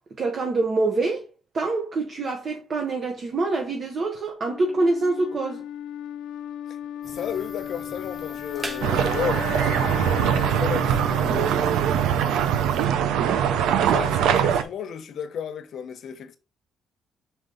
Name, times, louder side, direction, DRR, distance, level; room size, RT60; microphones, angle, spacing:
voice 1, 0.2-1.3 1.5-5.6, right 3 dB, 50° right, 1.1 m, -25 dB
Wind instrument woodwind instrument, 4.4-12.5, left 10 dB, 80° left, 0.5 m, -36 dB
voice 2, 7.0-9.5 10.5-12.1 13.6-16.4, left 8 dB, 65° left, 0.9 m, -33 dB
sound 1, 7.0-12.9, right 2 dB, 25° right, 1.2 m, -43 dB
sound 2, 8.8-14.6, right 9 dB, 85° right, 0.6 m, -22 dB
5.4 x 4.5 x 3.8 m
cardioid pair, 90°, 0 cm